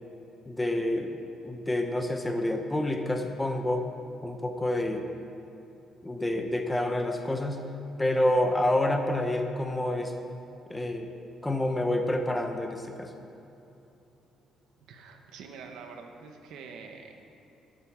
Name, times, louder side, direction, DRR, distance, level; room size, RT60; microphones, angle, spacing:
voice 1, 0.5-1.2 1.4-3.9 4.2-5.1 6.0-7.6 8.0-10.1 10.7-11.1 11.4-13.1, left 1 dB, 10° left, 5 dB, 0.9 m, -28 dB
voice 2, 14.9-17.1, right 5 dB, 80° right, 3 dB, 1.5 m, -45 dB
12.5 x 9.0 x 7.3 m, 2.9 s
cardioid pair, 145°, 0 cm